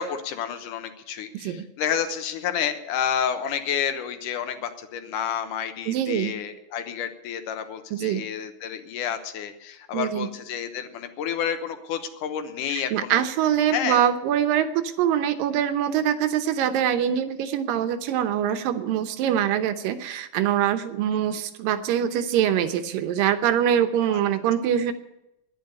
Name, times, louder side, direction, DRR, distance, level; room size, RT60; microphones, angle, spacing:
voice 1, 0.0-13.3 13.7-14.0 24.1-24.2, left 8 dB, 75° left, 8 dB, 2.6 m, -30 dB
voice 2, 1.3-1.7 5.9-6.4 7.9-8.2 9.9-10.3 12.7-24.9, right 10 dB, 90° right, 9 dB, 2.7 m, -24 dB
10.5 x 10.5 x 9.6 m, 0.88 s
omnidirectional pair, 3.9 m